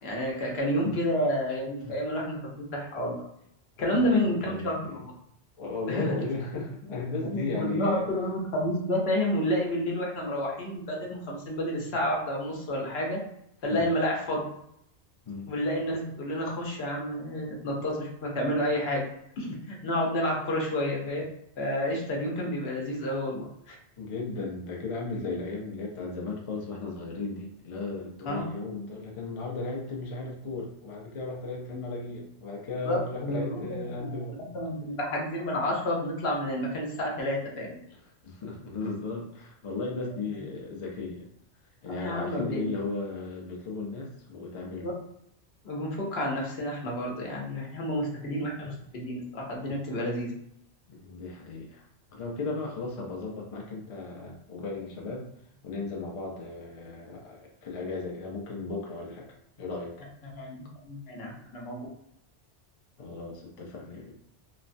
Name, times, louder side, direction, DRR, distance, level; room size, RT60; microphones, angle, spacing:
voice 1, 0.0-2.4 2.7-3.1 3.8-5.1 5.9-6.1 7.2-13.2 13.6-14.4 15.5-19.0 19.4-21.2 21.6-23.8 28.3-28.4 31.7-31.8 32.8-34.2 34.5-37.7 41.9-42.7 44.8-44.9 45.6-50.3 60.2-60.6 60.8-61.8, left 1 dB, 65° left, -1 dB, 0.9 m, -30 dB
voice 2, 3.9-5.0 5.6-8.0 13.7-13.8 15.2-15.5 24.0-34.6 38.2-41.3 41.8-44.9 50.9-55.3 55.6-59.3 59.6-60.0 63.0-64.1, left 3 dB, 45° left, -2 dB, 0.4 m, -35 dB
3.1 x 2.1 x 2.5 m, 0.74 s
omnidirectional pair, 1.2 m